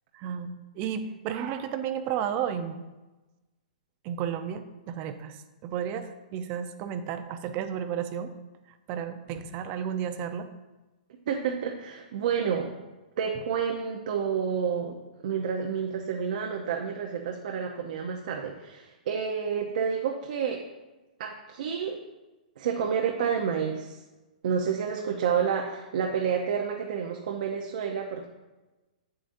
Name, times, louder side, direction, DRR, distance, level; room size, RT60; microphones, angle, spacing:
voice 1, 0.1-2.8 4.0-8.3 8.9-10.5, right 8 dB, 35° right, 9 dB, 0.6 m, -33 dB
voice 2, 11.3-12.7 13.2-15.0 15.2-20.6 21.2-22.0 22.6-24.0 24.4-28.3, right 7 dB, 60° right, 1 dB, 0.8 m, -29 dB
8.2 x 7.7 x 2.7 m, 1.1 s
hypercardioid pair, 140°, 5 cm